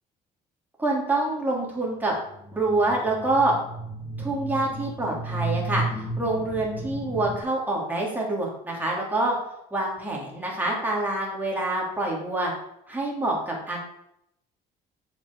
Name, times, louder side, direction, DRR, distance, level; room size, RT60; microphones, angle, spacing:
voice 1, 0.8-2.1 2.5-3.5 4.2-9.3 9.7-12.5 12.9-13.8, right 2 dB, 10° right, -3 dB, 3.2 m, -26 dB
sound 1, 2.1-7.4, right 2 dB, 85° left, 2.6 m, -33 dB
6.9 x 6.1 x 6.6 m, 0.77 s
cardioid pair, 110°, 17 cm